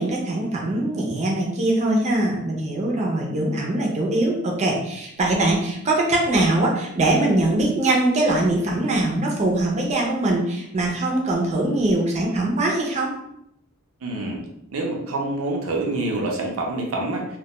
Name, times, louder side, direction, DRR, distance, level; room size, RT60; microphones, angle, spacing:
voice 1, 0.0-13.1, right 2 dB, 35° right, -1 dB, 0.4 m, -22 dB
voice 2, 14.0-14.4 14.7-17.3, right 2 dB, 85° right, 0 dB, 0.5 m, -26 dB
2.2 x 2.1 x 2.8 m, 0.79 s
head